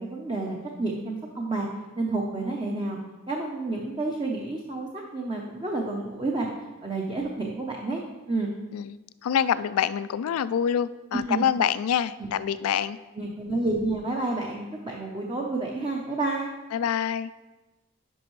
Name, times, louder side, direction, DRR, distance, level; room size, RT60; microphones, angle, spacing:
voice 1, 0.0-1.7 2.0-3.0 3.3-6.5 6.8-8.0 8.3-8.5 11.3-11.4 12.2-12.3 13.2-16.5, right 2 dB, 25° right, -1 dB, 0.6 m, -30 dB
voice 2, 8.7-13.0 16.7-17.3, left 8 dB, 85° left, 15 dB, 0.3 m, -26 dB
11.0 x 5.2 x 3.1 m, 1.2 s
head